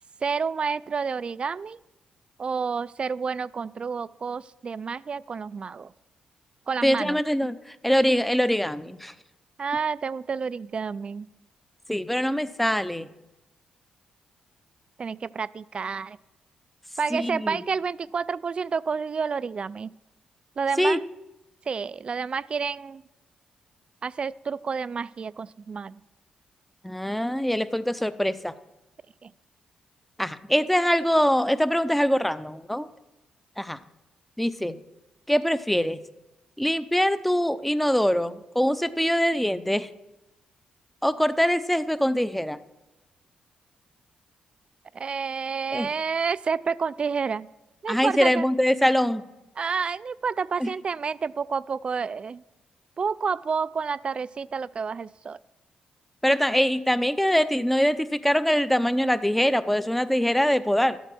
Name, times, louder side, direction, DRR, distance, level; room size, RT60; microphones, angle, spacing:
voice 1, 0.2-1.8 2.4-5.9 6.7-7.2 9.6-11.3 15.0-16.2 17.0-19.9 20.6-21.1 21.7-23.0 24.0-26.0 29.2-29.3 44.9-47.5 47.8-48.4 49.6-52.4 53.0-55.4, right 5 dB, 45° right, 18 dB, 0.4 m, -29 dB
voice 2, 6.8-9.1 11.9-13.1 17.1-17.6 20.8-21.0 26.8-28.5 30.2-32.9 33.6-33.8 34.4-34.8 35.3-36.0 36.6-39.9 41.0-42.6 45.7-45.9 47.9-49.2 50.6-50.7 56.2-61.0, equal, 5° left, 14 dB, 0.6 m, -23 dB
12.5 x 8.2 x 6.1 m, 1.0 s
cardioid pair, 75°, 3 cm